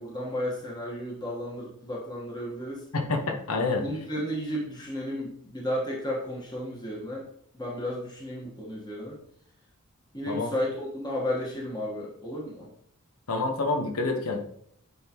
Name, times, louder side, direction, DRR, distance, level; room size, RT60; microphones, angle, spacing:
voice 1, 0.0-2.9 3.7-7.2 7.5-9.2 10.1-12.7, equal, 20° left, -4 dB, 1.2 m, -33 dB
voice 2, 2.9-3.8 10.3-10.5 13.3-14.4, left 3 dB, 85° left, 4 dB, 1.1 m, -27 dB
9.4 x 3.7 x 2.9 m, 0.68 s
head